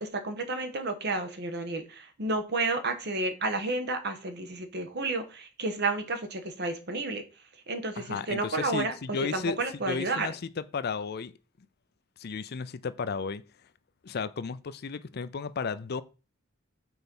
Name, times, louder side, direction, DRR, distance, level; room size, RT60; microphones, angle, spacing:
voice 1, 0.0-7.2 7.7-10.3, right 2 dB, 55° right, 1.2 m, -31 dB
voice 2, 8.0-9.6 9.9-11.3 12.2-13.4 14.0-16.0, left 5 dB, 50° left, 0.5 m, -33 dB
6.1 x 4.5 x 5.3 m
head